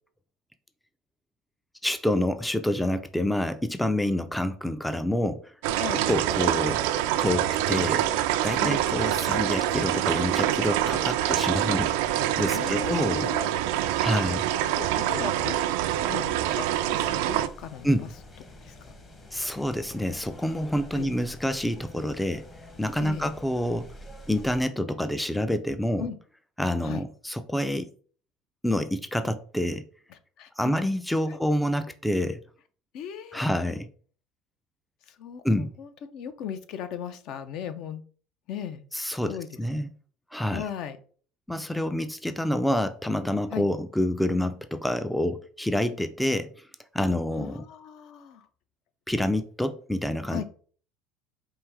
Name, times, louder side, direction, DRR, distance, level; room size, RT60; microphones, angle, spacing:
voice 1, 1.8-5.5 6.1-6.8 7.2-8.1 8.4-13.3 14.0-14.4 17.8-18.1 19.3-22.5 22.8-23.9 24.3-26.1 26.6-27.9 28.6-29.8 30.6-32.4 33.3-33.9 35.4-35.7 38.9-39.9 40.3-40.6 41.5-46.6 46.9-47.6 49.1-50.4, left 1 dB, 5° left, 0.3 m, -27 dB
sound 1, 5.6-17.5, right 12 dB, 80° right, 0.3 m, -26 dB
voice 2, 12.5-13.6 13.9-15.6 16.0-18.1 18.6-18.7 20.9-21.1 23.0-23.3 26.0-26.2 26.8-27.0 30.1-30.7 31.3-31.4 32.9-33.5 35.1-38.0 38.5-38.8 39.2-39.5 40.5-41.0 43.5-43.7 47.4-48.5 50.3-50.4, left 8 dB, 60° left, 0.5 m, -38 dB
sound 2, 15.9-24.6, left 1 dB, 25° left, 0.9 m, -47 dB
4.6 x 2.6 x 3.5 m
supercardioid pair, 115°, 0 cm